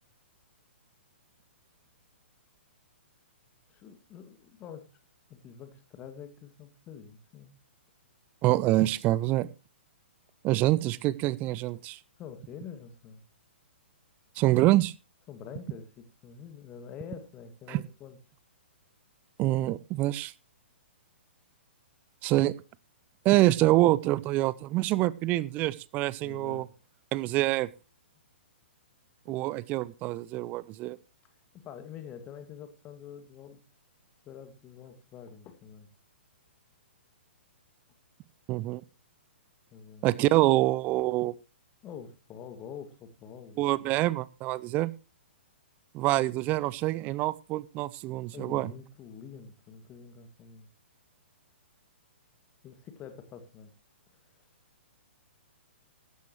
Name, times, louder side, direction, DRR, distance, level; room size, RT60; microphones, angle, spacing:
voice 1, 3.7-4.9 5.3-7.5 12.2-13.2 15.3-18.2 26.2-26.7 29.3-29.4 31.6-33.6 34.3-35.9 39.7-40.1 41.8-44.0 48.3-50.7 52.6-53.7, left 7 dB, 25° left, 8 dB, 1.9 m, -46 dB
voice 2, 8.4-9.5 10.4-12.0 14.4-14.9 17.7-17.8 19.4-20.3 22.2-22.5 23.2-26.6 27.1-27.7 29.3-31.0 38.5-38.8 40.0-41.3 43.6-44.9 45.9-48.7, right 17 dB, 25° right, 20 dB, 0.5 m, -26 dB
15.5 x 12.0 x 3.0 m, 0.31 s
figure-of-eight pair, 120°, 6 cm